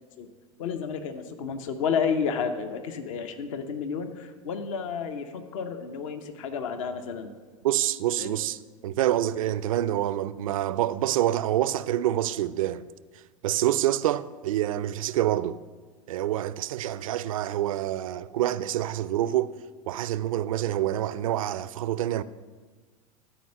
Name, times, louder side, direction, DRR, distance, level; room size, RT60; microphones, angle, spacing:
voice 1, 0.6-7.3 8.2-8.4, left 6 dB, 65° left, 0.8 m, -31 dB
voice 2, 7.6-12.9 13.4-15.6 16.1-19.5 19.9-22.2, right 13 dB, 70° right, 0.4 m, -27 dB
13.0 x 4.4 x 5.5 m
hypercardioid pair, 85°, 18 cm